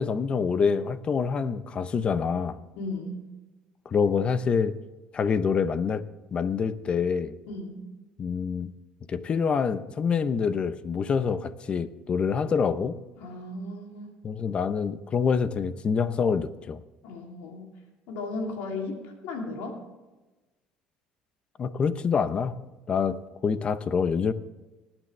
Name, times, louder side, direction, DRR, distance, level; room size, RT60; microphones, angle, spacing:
voice 1, 0.0-2.6 3.9-4.7 5.1-6.0 6.3-7.4 8.2-8.7 9.1-13.0 14.2-16.8 21.6-22.6 22.9-24.3, left 6 dB, 35° left, 13 dB, 0.8 m, -26 dB
voice 2, 2.8-3.2 7.5-7.8 13.2-14.2 17.0-17.6 18.1-19.8, left 2 dB, 80° left, 1 dB, 3.0 m, -35 dB
19.5 x 9.0 x 3.4 m, 1.1 s
cardioid pair, 115°, 3 cm